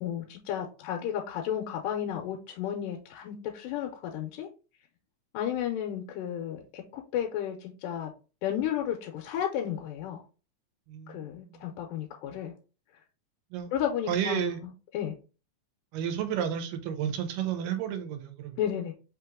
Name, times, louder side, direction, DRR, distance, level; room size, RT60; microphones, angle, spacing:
voice 1, 0.0-4.5 5.3-8.1 8.4-10.2 11.1-12.5 13.7-15.2 18.6-18.9, left 10 dB, 85° left, 2 dB, 2.2 m, -33 dB
voice 2, 10.9-11.7 13.5-13.7 14.1-14.6 15.9-18.6, right 9 dB, 85° right, 6 dB, 2.4 m, -32 dB
5.2 x 2.9 x 3.6 m, 0.34 s
omnidirectional pair, 3.8 m